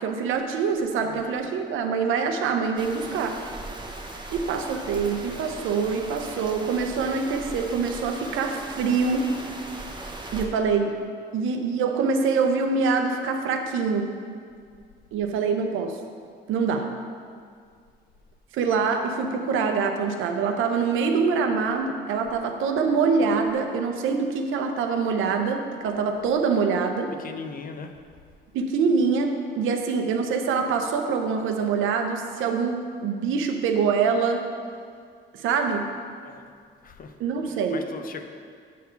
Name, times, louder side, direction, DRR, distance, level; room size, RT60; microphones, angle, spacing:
voice 1, 0.0-3.4 4.3-9.3 10.3-10.9 11.3-14.1 15.1-16.0 16.5-16.9 18.5-27.1 28.5-34.5 35.3-35.9 37.2-37.8, right 5 dB, 85° right, 5 dB, 0.7 m, -25 dB
voice 2, 1.0-1.4 27.2-27.9 36.2-36.5 36.8-37.2 37.4-38.2, left 5 dB, 45° left, 6 dB, 0.6 m, -39 dB
sound 1, 2.8-10.5, right 2 dB, 25° right, 0.8 m, -38 dB
7.5 x 3.8 x 5.6 m, 2.1 s
cardioid pair, 90°, 20 cm